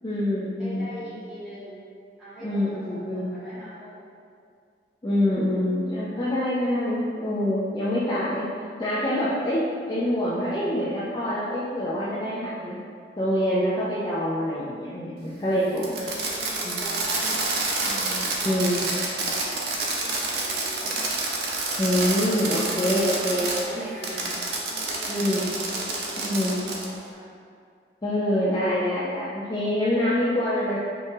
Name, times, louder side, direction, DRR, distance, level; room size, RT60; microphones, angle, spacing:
voice 1, 0.0-0.9 2.4-3.4 5.0-8.5 8.8-12.8 13.2-16.0 16.6-16.8 17.9-18.8 21.8-24.4 25.1-25.5 26.2-26.6 28.0-30.8, left 1 dB, 25° left, -9 dB, 0.4 m, -26 dB
voice 2, 0.6-1.8 2.2-4.1 15.6-17.9 18.3-18.6 19.7-21.1 23.1-25.3 25.6-27.3, equal, 5° right, -13 dB, 1.3 m, -42 dB
Fireworks, 15.8-23.6 24.0-26.9, right 3 dB, 65° right, 0.6 m, -28 dB
5.2 x 2.5 x 2.7 m, 2.3 s
head